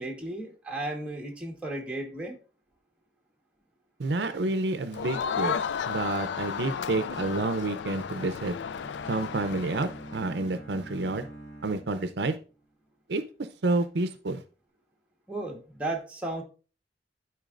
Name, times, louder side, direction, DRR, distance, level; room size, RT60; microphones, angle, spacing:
voice 1, 0.0-2.4 15.3-16.4, right 2 dB, 5° right, 0 dB, 1.3 m, -34 dB
voice 2, 4.0-5.6 5.9-8.5 9.1-11.3 11.6-12.4 13.1-14.4, right 2 dB, 70° right, 10 dB, 0.6 m, -29 dB
Crowd, 4.9-10.3, left 7 dB, 85° left, 0.3 m, -33 dB
Bowed string instrument, 7.9-12.6, right 1 dB, 25° left, 3.2 m, -46 dB
12.5 x 4.6 x 2.5 m, 0.36 s
head